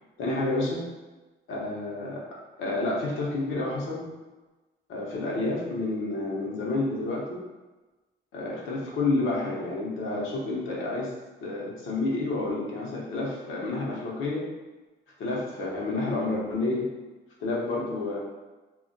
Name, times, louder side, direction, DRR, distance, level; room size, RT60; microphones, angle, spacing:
voice 1, 0.2-0.9 1.5-2.2 2.6-4.1 4.9-7.4 8.3-11.1 11.4-14.5 15.2-16.9 17.4-18.2, left 2 dB, 80° left, -3 dB, 0.9 m, -29 dB
2.4 x 2.1 x 3.9 m, 1.2 s
cardioid pair, 90°, 20 cm